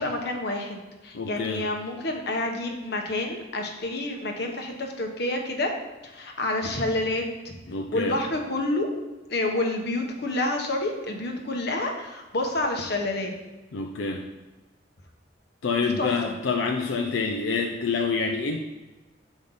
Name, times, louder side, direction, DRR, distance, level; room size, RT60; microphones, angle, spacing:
voice 1, 0.0-5.7 6.1-7.5 7.9-8.9 9.3-13.3 15.8-16.3, left 2 dB, 60° left, 3 dB, 1.0 m, -28 dB
voice 2, 1.1-1.7 7.7-8.2 13.7-14.2 15.6-18.6, left 4 dB, 85° left, 3 dB, 0.5 m, -27 dB
7.1 x 5.1 x 3.9 m, 1.1 s
head